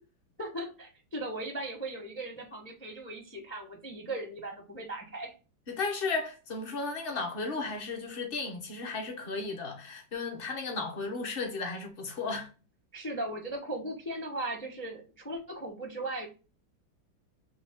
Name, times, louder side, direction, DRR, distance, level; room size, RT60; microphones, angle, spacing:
voice 1, 0.4-5.3 12.9-16.3, right 1 dB, 20° left, 0.3 m, -38 dB
voice 2, 5.7-12.5, left 3 dB, 40° left, 0.8 m, -34 dB
4.0 x 3.0 x 3.5 m
omnidirectional pair, 2.1 m